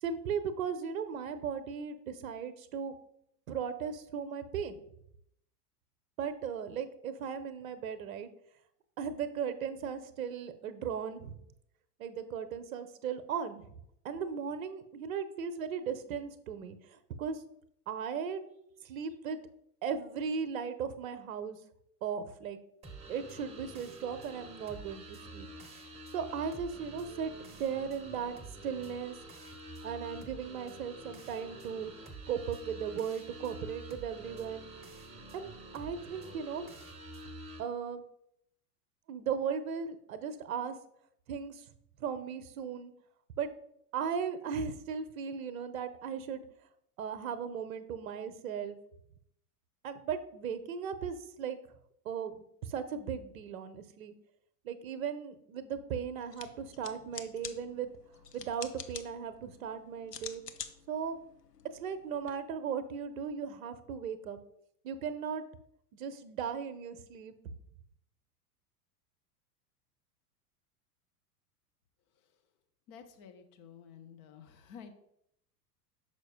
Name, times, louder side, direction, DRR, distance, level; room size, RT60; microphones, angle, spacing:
voice 1, 0.0-2.9 3.5-4.8 6.2-8.3 9.0-11.4 12.0-13.8 14.0-17.4 17.9-18.4 18.8-19.4 19.8-21.6 22.0-22.6 23.1-25.5 26.1-29.2 29.8-31.9 32.3-34.7 35.3-36.7 37.6-38.0 39.1-40.8 41.3-41.6 42.0-42.9 43.4-43.5 43.9-46.5 47.0-48.8 49.8-51.6 52.0-54.1 54.6-57.9 58.3-60.4 60.9-61.2 61.7-64.4 64.8-65.4 66.0-67.5, right 7 dB, 60° right, 12 dB, 0.8 m, -37 dB
sound 1, 22.8-37.6, right 1 dB, 15° right, 0.8 m, -48 dB
sound 2, 56.2-62.3, left 7 dB, 80° left, 0.6 m, -48 dB
voice 2, 72.9-75.0, left 7 dB, 20° left, 6 dB, 0.3 m, -51 dB
6.2 x 5.1 x 3.6 m, 0.75 s
figure-of-eight pair, 85°, 47 cm